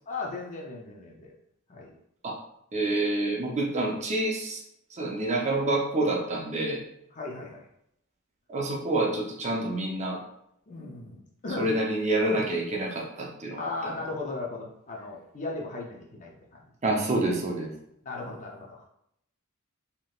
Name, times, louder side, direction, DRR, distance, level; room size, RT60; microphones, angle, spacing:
voice 1, 0.1-1.3 1.7-1.9 3.8-4.0 7.1-7.7 10.7-11.7 12.3-12.5 13.6-16.6 18.0-18.8, left 3 dB, 35° left, -1 dB, 0.5 m, -37 dB
voice 2, 2.7-4.6 4.9-6.8 8.5-10.2 11.6-13.6 13.8-13.9 16.8-17.7, right 2 dB, 35° right, -2 dB, 0.6 m, -27 dB
3.3 x 2.8 x 2.3 m, 0.76 s
head